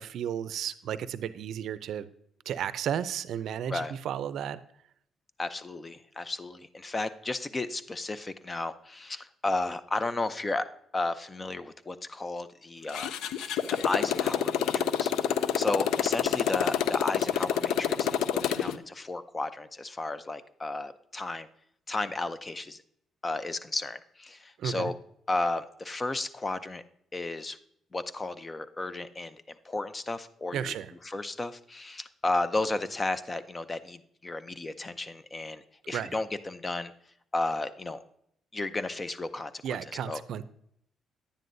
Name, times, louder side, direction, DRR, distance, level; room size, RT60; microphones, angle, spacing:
voice 1, 0.0-2.1 2.5-4.6 24.6-24.9 30.5-30.9 35.9-36.2 39.6-40.4, right 9 dB, 75° right, 14 dB, 0.4 m, -33 dB
voice 2, 5.4-10.7 10.9-13.1 13.7-15.1 15.6-18.1 18.3-21.5 21.9-22.8 23.2-24.9 25.3-26.8 27.1-27.6 27.9-29.4 29.6-30.7 31.0-36.9 37.3-38.0 38.5-40.2, left 2 dB, 25° left, 13 dB, 0.6 m, -33 dB
Motorcycle, 12.9-18.8, left 9 dB, 85° left, 0.4 m, -28 dB
10.0 x 9.3 x 2.6 m, 0.71 s
cardioid pair, 90°, 0 cm